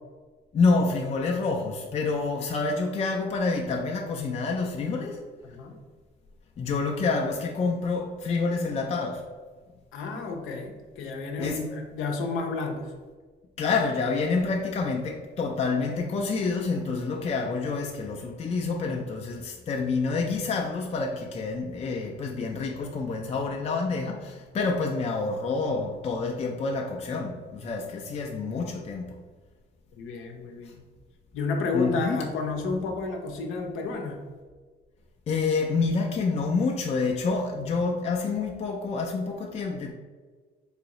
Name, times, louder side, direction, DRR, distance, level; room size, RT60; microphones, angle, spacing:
voice 1, 0.5-5.2 6.6-9.3 11.4-11.8 13.6-29.2 30.6-30.7 31.7-32.2 35.3-39.9, left 4 dB, 35° left, 0.4 m, -28 dB
voice 2, 5.4-5.7 9.9-12.9 30.0-30.8 31.3-34.2, left 3 dB, 90° left, 0.7 m, -31 dB
4.0 x 2.6 x 2.9 m
cardioid pair, 90°, 20 cm